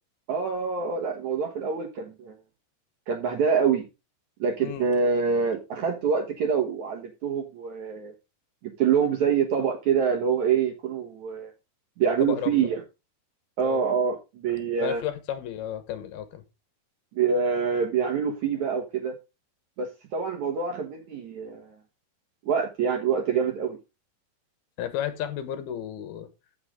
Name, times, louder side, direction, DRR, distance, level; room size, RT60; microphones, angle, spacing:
voice 1, 0.3-2.3 3.1-3.8 4.4-8.1 8.6-11.5 12.0-12.8 13.6-15.0 17.2-19.1 19.8-21.7 22.5-23.8, right 6 dB, 60° right, 2.1 m, -26 dB
voice 2, 12.2-12.7 13.6-13.8 14.7-16.4 24.8-26.3, left 10 dB, 70° left, 3.0 m, -33 dB
14.0 x 6.5 x 3.7 m
omnidirectional pair, 4.8 m